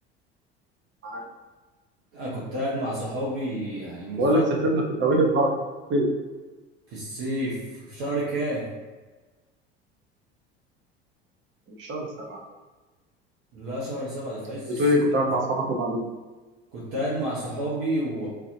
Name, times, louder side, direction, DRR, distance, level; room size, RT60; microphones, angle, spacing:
voice 1, 2.1-4.5 6.9-8.7 13.5-14.8 16.7-18.3, right 1 dB, 60° right, -8 dB, 1.1 m, -30 dB
voice 2, 4.2-5.5 5.9-6.1 11.8-12.4 14.8-16.0, right 1 dB, 35° right, 0 dB, 0.9 m, -23 dB
3.9 x 2.8 x 2.7 m, 1.2 s
hypercardioid pair, 70°, 32 cm